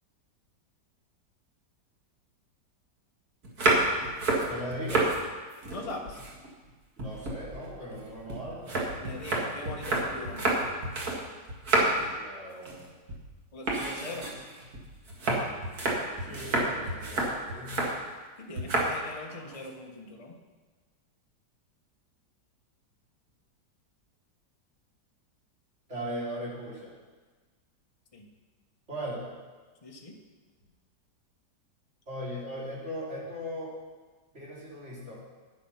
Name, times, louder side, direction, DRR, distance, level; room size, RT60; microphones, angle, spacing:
sound 1, 3.4-5.2 5.5-6.7 7.0-11.2 11.5-12.1 12.5-12.8 13.1-13.3 13.7-18.0 18.6-19.0 19.3-19.7, right 2 dB, 55° right, 2.4 m, -29 dB
voice 1, 4.5-5.1 7.0-8.7 11.9-12.9 16.2-17.8 25.9-26.9 28.9-29.3 32.1-33.7 34.3-35.1, equal, 40° right, -6 dB, 3.4 m, -38 dB
voice 2, 5.7-6.2 9.0-10.5 13.5-14.3 18.4-20.3 28.1-28.3 29.8-30.2, left 2 dB, 20° left, 1 dB, 1.1 m, -41 dB
10.5 x 9.9 x 5.7 m, 1.3 s
omnidirectional pair, 1.9 m